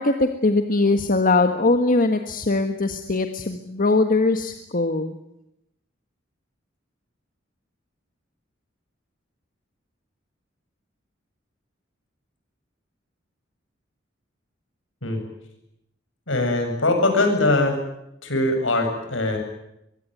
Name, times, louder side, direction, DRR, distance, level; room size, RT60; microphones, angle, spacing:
voice 1, 0.0-5.2, left 2 dB, 45° left, 6 dB, 1.6 m, -21 dB
voice 2, 16.3-17.7 18.2-19.4, left 2 dB, 75° left, 5 dB, 7.6 m, -21 dB
24.0 x 22.5 x 9.4 m, 0.84 s
head